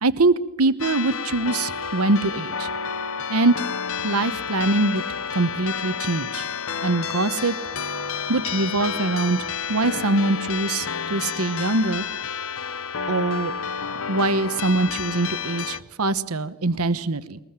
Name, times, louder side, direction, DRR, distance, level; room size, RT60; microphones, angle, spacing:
voice 1, 0.0-2.7 3.3-3.5 4.0-5.0 5.3-6.5 6.8-7.5 8.3-12.0 13.1-13.5 14.1-17.4, right 2 dB, 85° right, 13 dB, 1.1 m, -23 dB
sound 1, 0.8-15.8, left 6 dB, 65° left, 0.8 m, -30 dB
22.5 x 21.0 x 9.0 m, 0.94 s
head